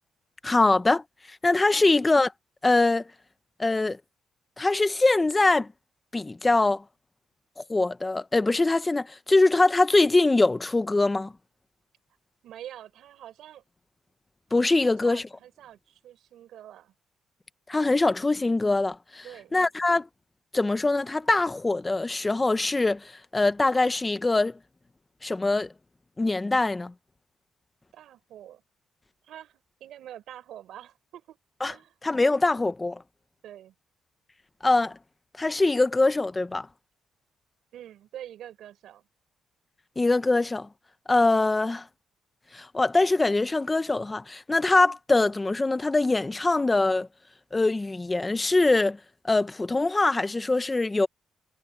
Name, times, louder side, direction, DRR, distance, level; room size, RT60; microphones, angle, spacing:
voice 1, 0.4-1.0 1.4-2.3 2.6-3.1 3.6-4.0 4.6-5.7 6.1-6.8 7.6-11.3 14.5-15.2 17.7-19.2 19.5-20.1 20.5-24.6 25.2-25.7 26.2-26.9 31.6-31.7 32.0-33.0 34.6-35.0 35.4-36.7 40.0-40.7 41.1-41.8 42.5-47.1 47.5-49.0 49.2-51.1, left 2 dB, 20° left, 1.0 m, -23 dB
voice 2, 12.4-13.6 14.8-16.9 19.2-19.6 27.9-28.6 29.2-31.4 31.7-31.9 33.4-33.7 37.7-39.0, right 11 dB, 75° right, 5.1 m, -45 dB
cardioid pair, 90°, 0 cm